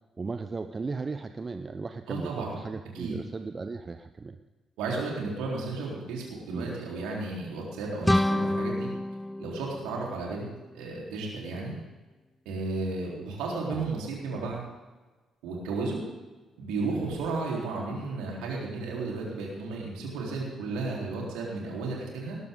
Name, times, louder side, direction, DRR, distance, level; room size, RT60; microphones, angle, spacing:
voice 1, 0.2-4.4 6.5-6.8 13.7-13.9, right 4 dB, 35° right, 9 dB, 0.7 m, -36 dB
voice 2, 2.1-2.5 2.9-3.2 4.8-8.9 9.4-10.5 10.7-11.7 12.5-14.6 15.4-16.0 16.6-22.4, right 3 dB, 70° right, -3 dB, 3.9 m, -33 dB
sound 1, 8.0-10.8, left 1 dB, 10° left, 0.3 m, -28 dB
19.0 x 12.5 x 3.8 m, 1.3 s
figure-of-eight pair, 40°, 0 cm